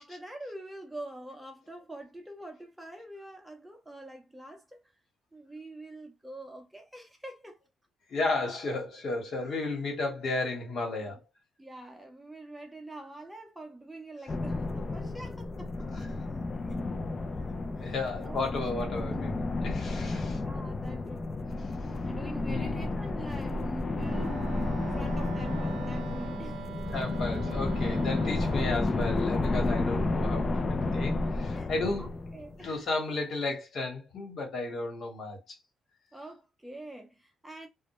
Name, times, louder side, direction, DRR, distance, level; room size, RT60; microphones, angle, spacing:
voice 1, 0.0-4.8 5.3-7.6 11.0-11.1 11.6-15.7 16.0-16.1 16.7-16.8 17.4-17.5 17.8-18.7 20.3-21.5 22.0-24.5 24.9-26.7 27.8-27.9 31.5-31.7 32.0-32.7 36.1-37.7, right 1 dB, 5° right, 0.6 m, -45 dB
voice 2, 8.1-11.2 15.9-16.1 17.7-20.4 22.5-23.0 26.9-32.2 32.6-35.6, left 3 dB, 60° left, 1.1 m, -33 dB
sound 1, 14.3-32.7, left 2 dB, 35° left, 0.3 m, -31 dB
Wind instrument woodwind instrument, 23.9-28.8, right 9 dB, 70° right, 0.3 m, -43 dB
2.1 x 2.1 x 2.9 m
cardioid pair, 90°, 0 cm